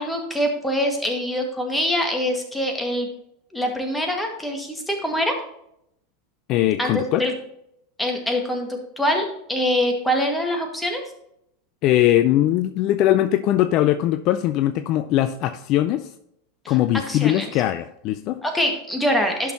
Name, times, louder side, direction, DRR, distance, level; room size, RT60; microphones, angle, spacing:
voice 1, 0.0-3.1 3.5-5.3 6.8-7.3 8.0-11.0 16.7-16.8 17.1-17.5 18.4-19.5, equal, 5° left, 2 dB, 1.9 m, -24 dB
voice 2, 6.5-7.3 11.8-16.1 16.7-18.4, left 13 dB, 50° left, 10 dB, 0.4 m, -20 dB
11.5 x 6.1 x 3.0 m, 0.76 s
hypercardioid pair, 90°, 0 cm